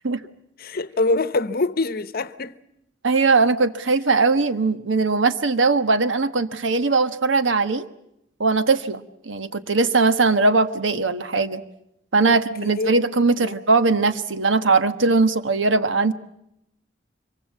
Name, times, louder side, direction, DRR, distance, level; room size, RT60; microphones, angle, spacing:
voice 1, 0.6-2.6 12.3-12.9 13.4-13.5, left 2 dB, 55° left, 0.9 m, -25 dB
voice 2, 3.0-7.9 8.4-11.6 12.1-16.1, right 3 dB, 85° right, 1.3 m, -20 dB
25.0 x 23.5 x 7.3 m
head